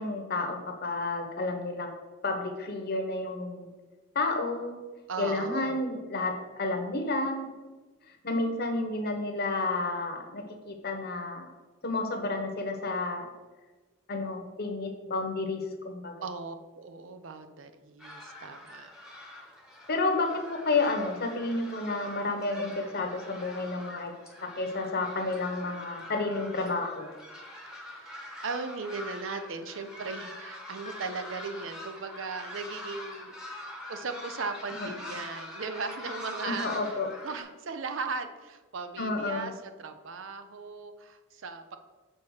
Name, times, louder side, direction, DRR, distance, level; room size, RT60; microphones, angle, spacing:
voice 1, 0.0-1.9 2.2-3.7 4.1-4.8 5.2-7.5 8.2-11.5 11.8-13.3 14.1-16.1 19.9-24.1 24.4-27.1 34.8-34.9 36.4-37.1 39.0-39.5, left 3 dB, 50° left, 4 dB, 1.0 m, -31 dB
voice 2, 5.1-5.8 16.2-18.9 19.2-19.4 27.7-41.8, right 4 dB, 65° right, 8 dB, 0.6 m, -38 dB
sound 1, 18.0-37.4, left 1 dB, 5° right, 1.1 m, -44 dB
6.5 x 4.2 x 6.4 m, 1.3 s
head